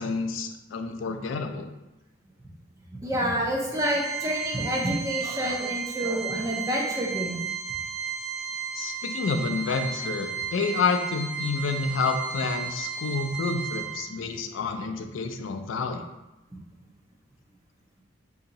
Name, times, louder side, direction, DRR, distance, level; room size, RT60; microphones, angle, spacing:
voice 1, 0.0-1.7 8.7-16.0, left 4 dB, 85° left, 6 dB, 0.4 m, -29 dB
voice 2, 3.0-7.5, equal, 15° right, -2 dB, 0.5 m, -28 dB
Organ, 3.7-14.3, right 6 dB, 90° right, 1.4 m, -34 dB
2.8 x 2.7 x 3.9 m, 0.98 s
head